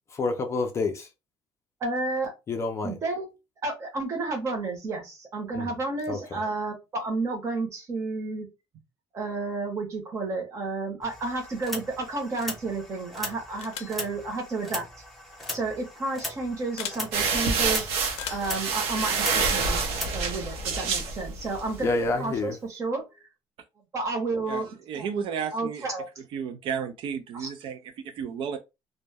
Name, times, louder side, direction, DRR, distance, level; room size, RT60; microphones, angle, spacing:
voice 1, 0.1-1.1 2.5-2.9 5.5-5.7 6.1-6.2 21.8-22.6, left 3 dB, 30° left, 0.4 m, -28 dB
voice 2, 1.8-2.3 2.8-3.3 3.6-8.5 9.1-14.9 15.5-17.9 18.3-23.0 23.9-24.7 24.9-25.1 25.5-26.1 27.4-27.5, right 3 dB, 30° right, 0.8 m, -31 dB
sound 1, 11.0-20.1, left 1 dB, ahead, 0.8 m, -39 dB
sound 2, 13.6-14.0 15.3-15.5 16.8-17.0 18.1-18.6, left 9 dB, 90° left, 0.5 m, -37 dB
sound 3, 17.1-21.8, right 4 dB, 85° right, 0.7 m, -27 dB
voice 3, 24.5-25.9 26.3-28.6, right 7 dB, 60° right, 0.4 m, -33 dB
2.1 x 2.1 x 3.3 m
cardioid pair, 170°, 10 cm